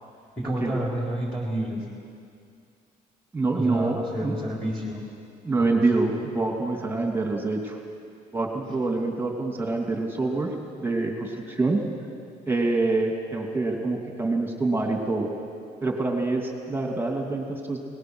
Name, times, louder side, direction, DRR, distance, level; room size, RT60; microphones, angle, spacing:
voice 1, 0.4-1.8 3.5-5.0 5.5-6.1, right 1 dB, 5° left, -3 dB, 4.2 m, -30 dB
voice 2, 3.3-4.6 5.4-7.8 8.3-10.5 10.8-11.8 12.5-15.3 15.8-17.8, right 3 dB, 15° right, 1 dB, 2.7 m, -26 dB
30.0 x 19.0 x 6.4 m, 2.3 s
cardioid pair, 110°, 17 cm